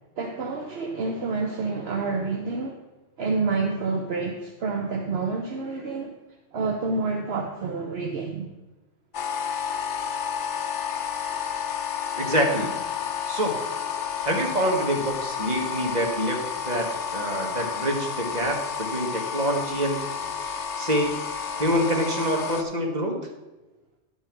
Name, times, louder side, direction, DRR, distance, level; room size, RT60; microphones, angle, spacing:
voice 1, 0.2-2.8 3.2-6.1 6.5-8.5 19.4-19.5, right 4 dB, 60° right, 2 dB, 1.1 m, -28 dB
sound 1, 9.1-22.6, left 7 dB, 75° left, 1.1 m, -31 dB
voice 2, 12.2-12.8 13.2-13.6 14.2-16.4 16.6-16.8 17.1-20.0 20.7-21.1 21.6-23.2, equal, 35° right, 1 dB, 1.6 m, -26 dB
11.0 x 5.8 x 6.0 m, 1.1 s
omnidirectional pair, 1.2 m